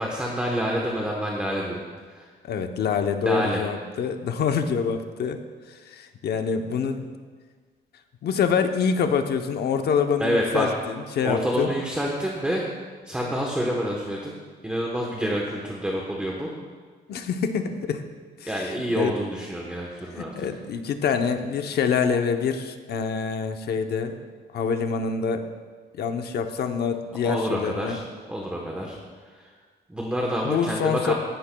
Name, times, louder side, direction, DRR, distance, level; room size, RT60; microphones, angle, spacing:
voice 1, 0.0-1.8 2.1-2.3 3.2-3.6 10.2-10.7 11.2-12.6 13.1-14.3 14.6-16.5 18.5-20.5 27.2-28.0 28.3-29.0 29.3-29.5 29.9-31.1, equal, 5° right, -2 dB, 1.0 m, -27 dB
voice 2, 2.4-5.4 5.7-7.1 8.2-11.7 17.1-18.0 18.4-19.2 20.2-24.2 24.5-25.5 26.0-28.0 30.4-31.1, left 6 dB, 60° left, 7 dB, 0.8 m, -26 dB
17.0 x 11.0 x 2.3 m, 1.5 s
cardioid pair, 140°, 19 cm